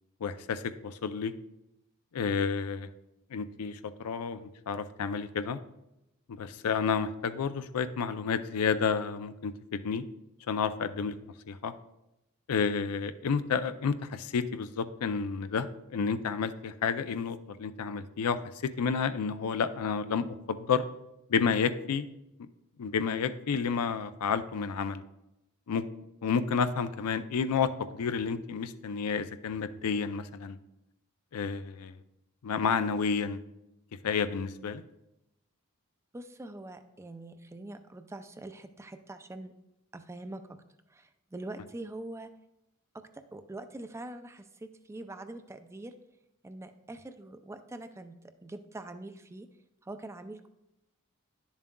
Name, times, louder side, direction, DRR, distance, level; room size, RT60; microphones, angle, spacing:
voice 1, 0.2-1.3 2.1-2.9 3.3-5.6 6.3-10.0 10.5-11.2 11.5-11.7 12.5-18.4 18.8-20.8 21.3-22.1 22.8-25.0 25.7-25.8 26.2-30.6 31.3-32.0 32.4-33.4 34.0-34.8, left 6 dB, 85° left, 11 dB, 0.4 m, -30 dB
voice 2, 36.1-39.5 39.9-40.6 40.9-42.3 42.9-46.0 46.4-49.5 49.8-50.5, right 2 dB, 10° right, 9 dB, 0.3 m, -44 dB
10.5 x 7.2 x 2.3 m, 0.89 s
head